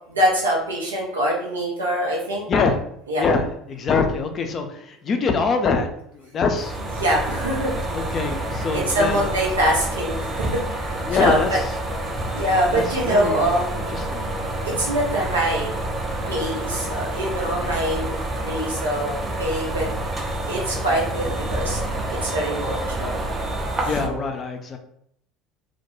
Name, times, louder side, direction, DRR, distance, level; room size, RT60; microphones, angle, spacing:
voice 1, 0.1-2.4 3.1-3.2 7.0-7.8 8.7-10.2 10.5-11.6 12.3-13.7 14.6-15.7 16.3-19.9 20.5-21.8 22.1-23.2 23.8-24.3, right 1 dB, 85° right, -4 dB, 0.5 m, -24 dB
voice 2, 3.2-6.8 7.9-9.3 11.0-11.6 12.7-13.5 13.9-14.2 23.8-24.8, left 4 dB, 40° left, 6 dB, 0.4 m, -24 dB
sound 1, 6.5-24.1, right 1 dB, 30° right, 0.5 m, -28 dB
2.2 x 2.1 x 2.9 m, 0.70 s
hypercardioid pair, 65°, 0 cm